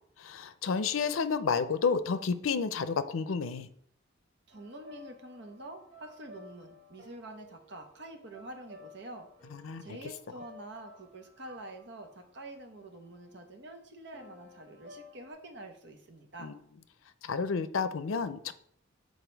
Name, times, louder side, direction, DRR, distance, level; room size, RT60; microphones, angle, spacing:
voice 1, 0.2-3.7 9.5-9.8 16.4-16.5 17.2-18.5, left 5 dB, 85° left, 13 dB, 0.5 m, -30 dB
sound 1, 4.5-13.3 14.1-15.3, left 2 dB, 35° right, 2.2 m, -55 dB
voice 2, 4.5-9.3 9.8-16.5, right 1 dB, 55° right, 5 dB, 1.0 m, -47 dB
7.1 x 4.0 x 4.5 m, 0.68 s
head